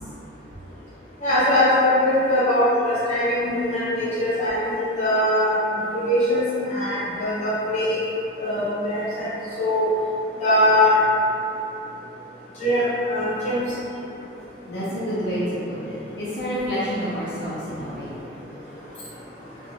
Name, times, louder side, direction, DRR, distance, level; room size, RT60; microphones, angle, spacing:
voice 1, 1.2-6.4 6.7-8.0 8.4-9.3 9.6-9.9 10.4-10.9 12.6-13.6, left 1 dB, 40° left, -11 dB, 0.8 m, -21 dB
voice 2, 14.7-18.1, equal, 70° left, -10 dB, 0.5 m, -28 dB
2.6 x 2.1 x 2.7 m, 2.9 s
head